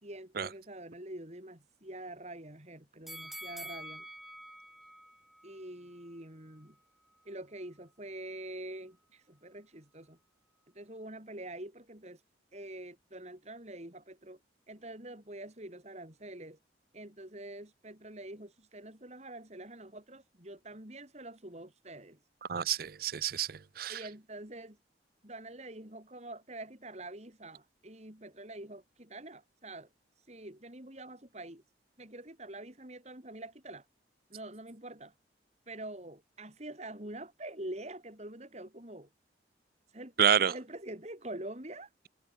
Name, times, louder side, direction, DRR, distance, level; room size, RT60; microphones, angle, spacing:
voice 1, 0.0-4.1 5.4-6.8 7.3-10.2 10.7-12.2 12.5-14.4 14.7-16.6 16.9-22.2 23.9-24.8 25.2-29.9 30.2-31.6 32.0-33.9 34.3-35.1 35.7-39.1 39.9-41.9, right 1 dB, 40° right, 4.1 m, -45 dB
sound 1, 3.1-6.2 6.6-6.7, equal, ahead, 1.4 m, -47 dB
voice 2, 22.5-24.0 40.2-40.5, right 8 dB, 55° right, 0.5 m, -28 dB
head